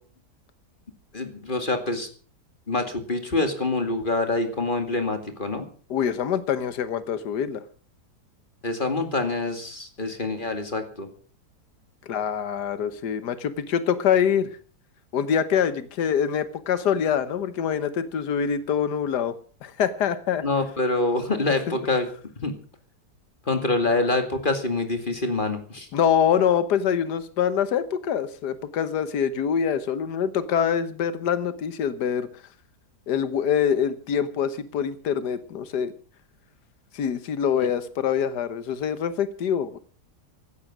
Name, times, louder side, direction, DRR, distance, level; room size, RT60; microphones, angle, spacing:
voice 1, 1.1-2.1 2.7-5.7 8.6-11.1 20.4-22.1 22.4-22.5 23.5-25.9, left 2 dB, 30° left, 7 dB, 2.4 m, -26 dB
voice 2, 5.9-7.6 12.1-14.5 15.1-19.4 19.6-20.4 21.7-21.8 25.9-32.3 33.1-35.9 36.9-39.8, left 8 dB, 80° left, 13 dB, 1.7 m, -25 dB
15.5 x 13.5 x 6.1 m, 0.41 s
omnidirectional pair, 1.8 m